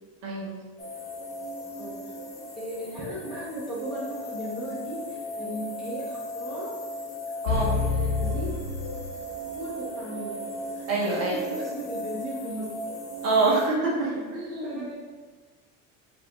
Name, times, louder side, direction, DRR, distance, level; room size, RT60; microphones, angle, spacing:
voice 1, 0.2-0.5 7.4-7.7 10.9-11.4 13.2-14.9, right 3 dB, 45° right, -4 dB, 0.9 m, -26 dB
sound 1, 0.8-13.7, equal, 20° left, 0.5 m, -37 dB
voice 2, 2.6-6.7 7.8-8.5 9.5-10.4 10.7-12.7 14.0-14.1 14.6-14.9, equal, ahead, -10 dB, 1.0 m, -36 dB
sound 2, 7.5-9.6 10.0-10.1, left 4 dB, 70° left, 1.0 m, -28 dB
5.5 x 2.6 x 3.0 m, 1.3 s
cardioid pair, 175°, 35 cm